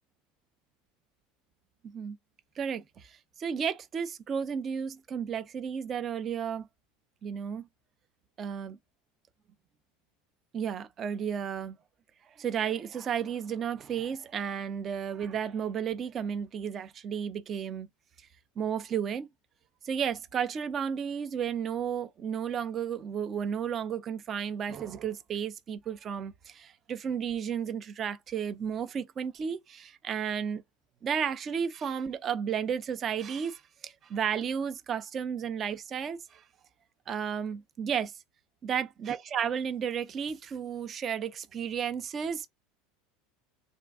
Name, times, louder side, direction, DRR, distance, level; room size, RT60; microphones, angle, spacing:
voice 1, 1.8-2.2 2.6-6.7 7.2-7.7 8.4-8.8 10.5-11.8 12.4-17.9 18.6-19.3 19.8-30.6 31.0-36.4 37.1-38.1 38.6-42.5, right 7 dB, 35° right, 0.5 m, -33 dB
2.6 x 2.3 x 3.4 m
hypercardioid pair, 75°, 0 cm